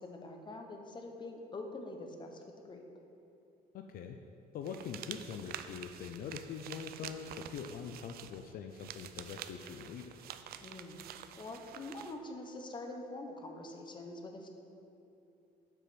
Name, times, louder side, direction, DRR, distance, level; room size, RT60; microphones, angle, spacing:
voice 1, 0.0-2.8 10.6-11.0 11.4-14.5, left 2 dB, 25° left, 4 dB, 0.9 m, -45 dB
voice 2, 3.7-4.2 4.5-10.1, left 6 dB, 60° left, 5 dB, 0.5 m, -43 dB
sound 1, 4.6-12.2, right 10 dB, 65° right, 0.4 m, -48 dB
7.6 x 5.0 x 6.1 m, 2.9 s
cardioid pair, 110°, 17 cm